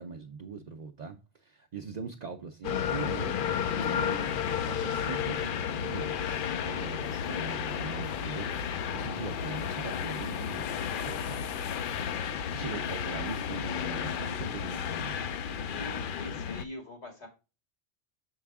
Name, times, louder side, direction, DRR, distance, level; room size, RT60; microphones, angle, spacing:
voice 1, 0.0-8.5 8.9-11.8 12.5-15.2, right 5 dB, 45° right, 0.6 m, -42 dB
sound 1, 2.6-16.7, left 8 dB, 60° left, 0.6 m, -32 dB
voice 2, 15.7-17.3, left 2 dB, 80° left, 2.7 m, -43 dB
6.6 x 4.7 x 3.5 m
omnidirectional pair, 1.1 m